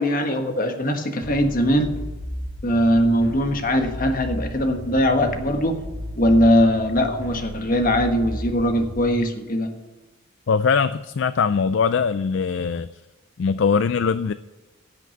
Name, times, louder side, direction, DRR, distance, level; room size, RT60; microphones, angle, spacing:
voice 1, 0.0-1.9 2.6-5.8 6.1-9.7, equal, 40° left, 6 dB, 1.4 m, -20 dB
sound 1, 1.2-9.2, equal, 80° left, 4.3 m, -34 dB
voice 2, 10.5-12.9 13.4-14.3, left 5 dB, 55° left, 14 dB, 0.4 m, -21 dB
16.5 x 6.0 x 9.2 m, 1.2 s
head